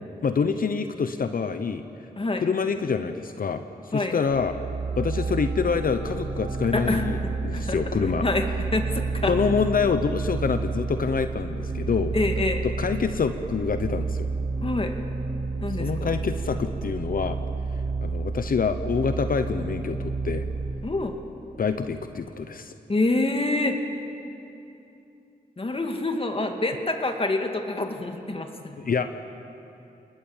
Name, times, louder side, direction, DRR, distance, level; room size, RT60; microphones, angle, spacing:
voice 1, 0.0-1.8 2.4-4.5 5.0-8.2 9.3-12.1 12.8-14.3 15.8-17.4 18.0-20.5 21.6-22.7 28.8-29.2, left 5 dB, 60° left, 9 dB, 0.9 m, -26 dB
sound 1, 4.2-20.7, right 4 dB, 80° right, 3.5 m, -30 dB
voice 2, 6.7-7.0 7.5-7.8 8.2-8.5 8.7-9.3 12.1-12.6 14.6-14.9 15.6-16.1 20.8-21.1 22.9-23.8 25.6-28.8, left 2 dB, 35° left, 4 dB, 2.4 m, -26 dB
28.0 x 20.0 x 7.4 m, 2.8 s
cardioid pair, 65°, 16 cm